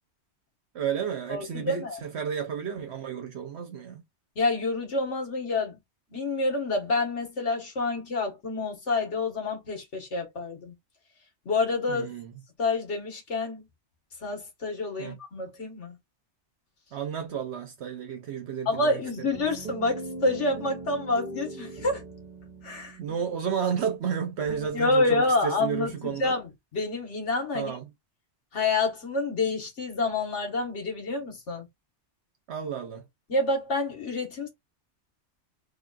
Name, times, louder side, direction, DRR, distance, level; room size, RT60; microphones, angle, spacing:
voice 1, 0.7-4.0 11.9-12.3 15.0-15.2 16.9-19.3 23.0-26.4 27.5-27.9 32.5-33.0, right 7 dB, 70° right, 1.0 m, -32 dB
voice 2, 1.3-2.0 4.4-5.8 6.1-10.7 11.5-12.1 12.6-13.6 14.2-16.0 18.7-22.0 22.6-23.0 24.7-27.7 28.5-31.7 33.3-34.5, left 3 dB, 85° left, 1.7 m, -28 dB
sound 1, 18.7-24.7, right 2 dB, 40° right, 1.1 m, -41 dB
3.4 x 2.4 x 3.9 m
omnidirectional pair, 1.2 m